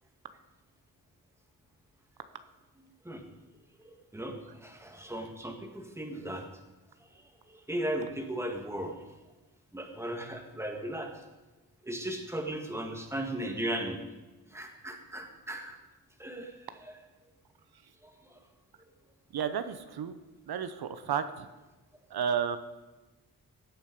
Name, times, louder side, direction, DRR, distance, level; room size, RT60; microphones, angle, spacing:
voice 1, 3.8-6.5 7.5-9.0 9.7-11.1 11.8-14.0 14.5-15.8 16.2-16.6 16.8-17.0 18.0-18.4, right 1 dB, 5° right, 3 dB, 1.8 m, -37 dB
voice 2, 19.3-20.2 20.5-21.5 22.1-22.6, right 8 dB, 85° right, 11 dB, 0.9 m, -32 dB
16.5 x 8.9 x 5.2 m, 1.1 s
wide cardioid pair, 125°, 37 cm